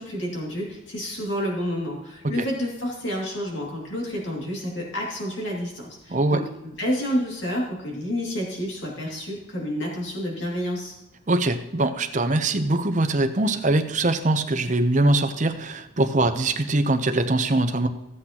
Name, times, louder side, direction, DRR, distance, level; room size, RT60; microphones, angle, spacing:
voice 1, 0.0-10.9, equal, 70° left, -2 dB, 2.4 m, -29 dB
voice 2, 6.1-6.4 11.3-17.9, right 2 dB, 40° right, 8 dB, 0.7 m, -22 dB
15.0 x 8.0 x 2.9 m, 0.96 s
head